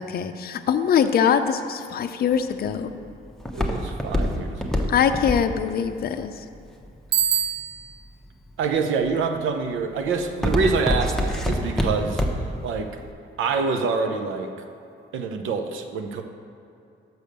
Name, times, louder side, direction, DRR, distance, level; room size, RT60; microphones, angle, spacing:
voice 1, 0.0-2.9 4.9-6.3, left 7 dB, 50° left, 9 dB, 0.5 m, -22 dB
Walk footsteps, 2.3-7.4 8.0-8.5 9.0-9.4 9.7-12.6 12.9-13.0, left 1 dB, ahead, 0.8 m, -25 dB
voice 2, 3.5-5.0 8.6-12.2 12.6-13.0 13.4-14.5 15.1-16.2, right 5 dB, 90° right, 5 dB, 0.7 m, -26 dB
Bicycle bell, 7.1-8.1, right 10 dB, 55° right, 0.5 m, -24 dB
6.3 x 5.2 x 6.5 m, 2.6 s
cardioid pair, 95°, 20 cm